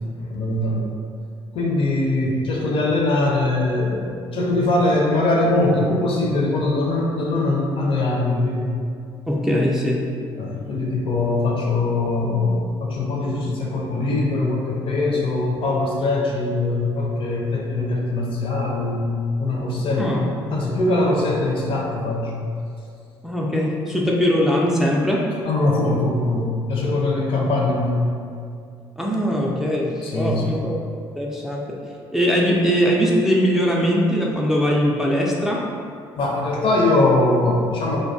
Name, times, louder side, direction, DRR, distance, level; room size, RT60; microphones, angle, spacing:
voice 1, 0.2-0.9 1.5-8.7 10.4-19.1 19.4-20.2 20.5-22.3 25.4-28.1 30.0-30.6 36.2-38.0, left 2 dB, 50° left, -2 dB, 0.5 m, -22 dB
voice 2, 9.3-10.1 20.0-20.6 23.2-25.2 27.3-27.5 29.0-30.8 31.2-31.7 32.1-35.6, equal, 5° right, -3 dB, 0.3 m, -21 dB
2.2 x 2.2 x 2.6 m, 2.3 s
hypercardioid pair, 55°, 12 cm